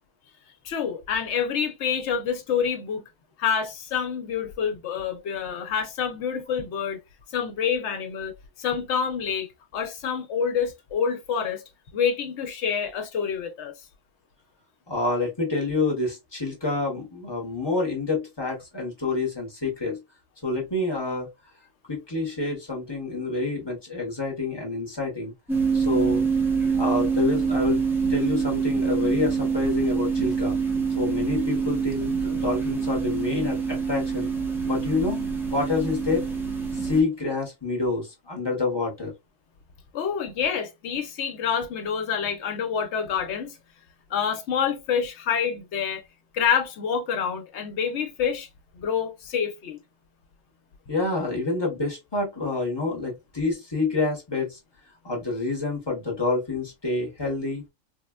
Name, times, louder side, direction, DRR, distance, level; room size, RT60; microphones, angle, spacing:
voice 1, 0.6-3.0 3.4-7.0 7.3-8.3 8.6-11.6 11.9-13.7 39.9-43.6 44.1-46.0 46.3-48.5 48.7-49.8, left 7 dB, 65° left, 0.9 m, -27 dB
voice 2, 14.9-20.0 20.4-21.3 21.9-25.3 25.7-26.2 26.7-27.8 28.1-30.6 31.0-34.3 34.6-35.3 35.5-36.3 36.7-39.1 50.9-54.6 55.0-57.6, left 3 dB, 25° left, 0.8 m, -27 dB
sound 1, 25.5-37.0, right 5 dB, 5° right, 0.3 m, -25 dB
3.4 x 2.1 x 2.2 m
omnidirectional pair, 1.4 m